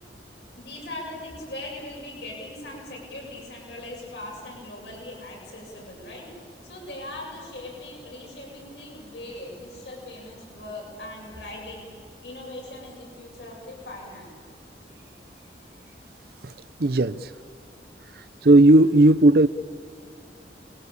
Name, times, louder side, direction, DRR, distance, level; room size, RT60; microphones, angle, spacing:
voice 1, 0.6-11.9 12.2-14.2, left 1 dB, 80° left, 7.5 m, -40 dB
voice 2, 16.8-17.3 18.4-19.5, right 2 dB, 60° right, 0.6 m, -15 dB
29.5 x 22.0 x 8.5 m
head